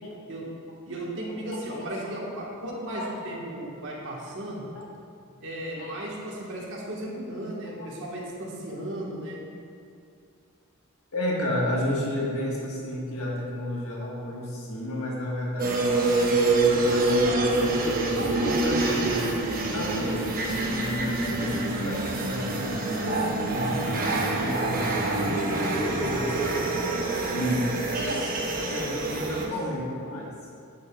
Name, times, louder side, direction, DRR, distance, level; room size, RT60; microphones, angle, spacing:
voice 1, 0.9-4.7 5.4-9.4 17.1-17.8 18.1-19.2 23.6-23.9 27.9-28.2 29.3-29.5, right 1 dB, 60° right, -4 dB, 1.5 m, -35 dB
voice 2, 1.7-2.1 3.0-3.1 5.8-6.0 7.8-7.9 11.1-17.3 18.2-19.1 19.7-26.7 27.3-27.8 28.6-30.3, left 1 dB, 85° left, -4 dB, 1.5 m, -32 dB
sound 1, 15.6-29.5, right 2 dB, 40° right, 0.9 m, -26 dB
sound 2, 16.4-22.1, left 1 dB, 60° left, 0.8 m, -44 dB
8.9 x 8.1 x 2.3 m, 2.4 s
head